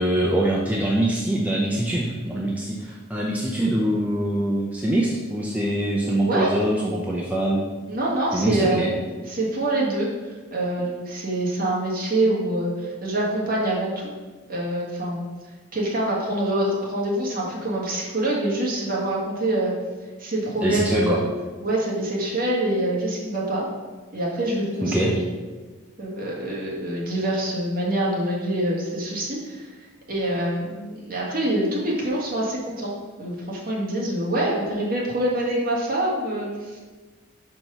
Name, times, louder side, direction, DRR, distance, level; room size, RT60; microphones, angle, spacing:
voice 1, 0.0-7.6 8.3-8.9 20.6-21.2 24.8-25.1, right 1 dB, 5° right, -4 dB, 0.5 m, -24 dB
voice 2, 6.2-6.5 7.9-8.9 9.3-14.1 14.5-15.2 15.7-19.7 20.2-21.2 21.6-23.7 24.1-25.2 26.0-29.8 30.1-32.9 33.2-36.8, right 1 dB, 45° right, -4 dB, 1.5 m, -25 dB
5.1 x 4.6 x 5.4 m, 1.3 s
head